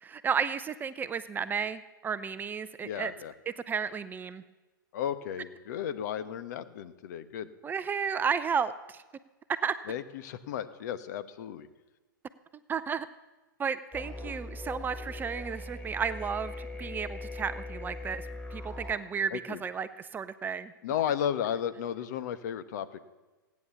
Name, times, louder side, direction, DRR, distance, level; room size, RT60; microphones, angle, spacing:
voice 1, 0.0-3.1 3.5-4.4 7.6-9.0 9.6-9.7 12.7-13.1 13.6-20.7, right 6 dB, 15° right, 13 dB, 0.6 m, -33 dB
voice 2, 2.8-3.3 4.9-7.5 9.9-11.7 19.3-19.6 20.8-23.1, left 9 dB, 55° left, 12 dB, 1.1 m, -34 dB
sound 1, 13.9-18.9, left 2 dB, 10° left, 2.8 m, -40 dB
16.5 x 9.6 x 7.0 m, 1.2 s
hypercardioid pair, 110°, 11 cm